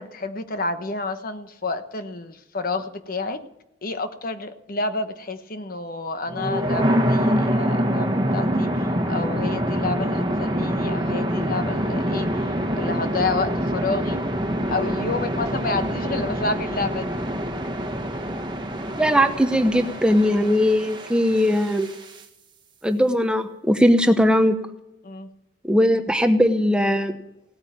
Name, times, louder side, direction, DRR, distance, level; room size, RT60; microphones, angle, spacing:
voice 1, 0.0-3.4 3.8-14.2 14.7-17.3 25.0-25.3, left 3 dB, 50° left, 9 dB, 1.1 m, -29 dB
sound 1, 6.3-22.2, equal, 25° right, 1.5 m, -25 dB
voice 2, 19.0-21.9 22.8-24.6 25.6-27.2, equal, 5° right, 7 dB, 0.8 m, -19 dB
17.5 x 8.8 x 8.8 m, 0.86 s
head